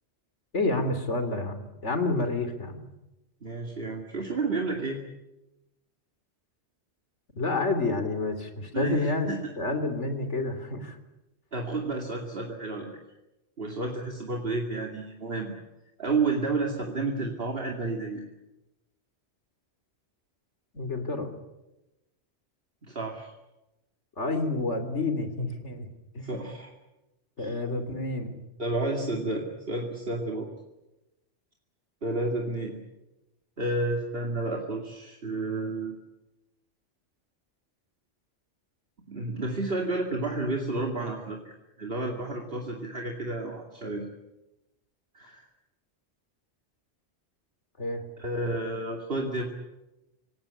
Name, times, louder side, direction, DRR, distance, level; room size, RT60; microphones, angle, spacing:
voice 1, 0.5-2.9 7.4-9.3 9.6-11.0 20.7-21.3 24.2-25.9 26.1-26.3 27.4-28.4 47.8-48.0, left 2 dB, 85° left, 9 dB, 3.4 m, -29 dB
voice 2, 3.4-5.0 8.7-9.4 11.5-13.0 13.6-15.5 16.0-18.2 22.8-23.3 26.2-26.7 27.4-27.6 28.6-30.5 32.0-32.8 33.6-36.0 39.1-44.0 45.1-45.5 48.2-49.5, right 2 dB, 55° right, 1 dB, 2.6 m, -31 dB
26.0 x 18.5 x 9.8 m, 1.0 s
omnidirectional pair, 1.2 m